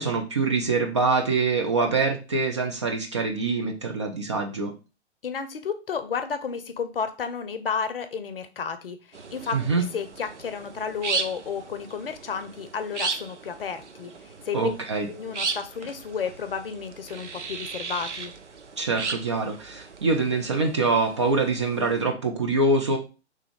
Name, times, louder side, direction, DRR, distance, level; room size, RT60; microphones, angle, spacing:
voice 1, 0.0-4.7 9.5-9.8 14.5-15.1 18.8-23.0, right 3 dB, 25° right, 2 dB, 0.4 m, -24 dB
voice 2, 5.2-14.8 15.1-18.3, left 6 dB, 55° left, 10 dB, 0.6 m, -32 dB
sound 1, 9.1-22.0, right 4 dB, 80° right, 0.6 m, -36 dB
3.4 x 3.1 x 3.6 m, 0.32 s
figure-of-eight pair, 125°, 35 cm